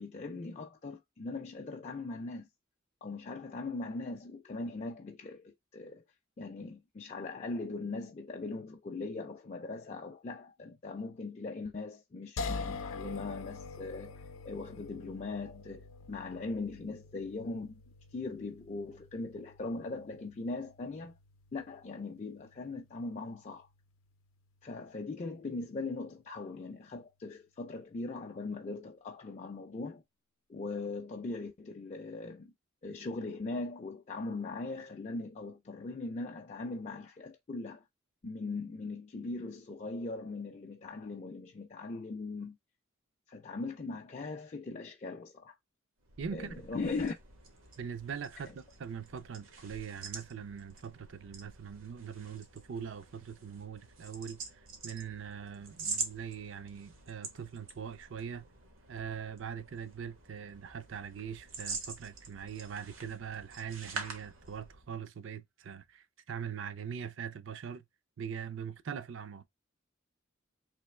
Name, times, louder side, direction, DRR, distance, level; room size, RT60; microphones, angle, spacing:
voice 1, 0.0-2.5 3.0-6.0 6.4-17.8 18.1-21.1 21.5-23.7 24.6-30.0 30.5-32.5 32.8-37.8 38.2-42.6 43.3-45.6 46.3-47.1 48.4-48.5, left 3 dB, 35° left, 0.4 m, -40 dB
sound 1, 12.4-25.4, left 4 dB, 85° left, 0.5 m, -46 dB
sound 2, 46.0-64.9, right 4 dB, 85° right, 1.1 m, -46 dB
voice 2, 46.2-46.7 47.8-54.4 54.8-58.5 58.9-67.8 68.2-69.4, right 7 dB, 65° right, 0.4 m, -42 dB
3.3 x 3.0 x 3.1 m
head